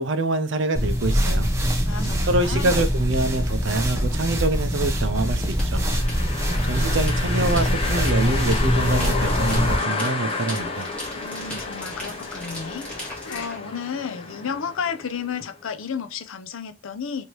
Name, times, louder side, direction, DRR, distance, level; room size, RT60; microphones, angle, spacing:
voice 1, 0.0-1.5 2.2-5.8 6.7-10.9, right 2 dB, 60° right, 0.6 m, -25 dB
sound 1, 0.8-9.8, equal, 15° right, 0.6 m, -23 dB
voice 2, 1.8-2.8 11.2-17.3, left 6 dB, 70° left, 0.5 m, -32 dB
sound 2, 5.6-13.6, equal, 5° left, 1.3 m, -38 dB
sound 3, 5.7-15.5, left 3 dB, 25° left, 0.7 m, -31 dB
3.2 x 2.7 x 4.4 m
head